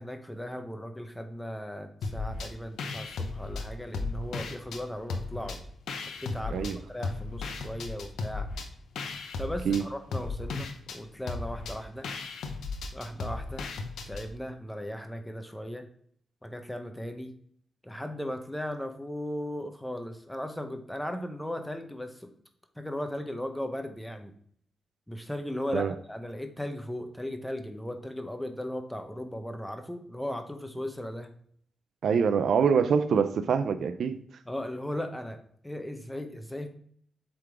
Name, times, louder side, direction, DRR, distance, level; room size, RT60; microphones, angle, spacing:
voice 1, 0.0-5.6 6.2-8.5 9.4-12.1 12.9-13.7 14.1-15.9 16.4-17.3 17.8-22.3 22.8-24.3 25.1-31.3 34.5-35.4 35.6-36.7, left 1 dB, 5° left, 0.9 m, -37 dB
sound 1, 2.0-2.5 2.8-4.8 5.1-6.7 7.0-14.3, left 3 dB, 90° left, 0.8 m, -35 dB
voice 2, 32.0-34.2, right 6 dB, 75° right, 0.4 m, -25 dB
7.8 x 3.8 x 3.5 m
cardioid pair, 90°, 0 cm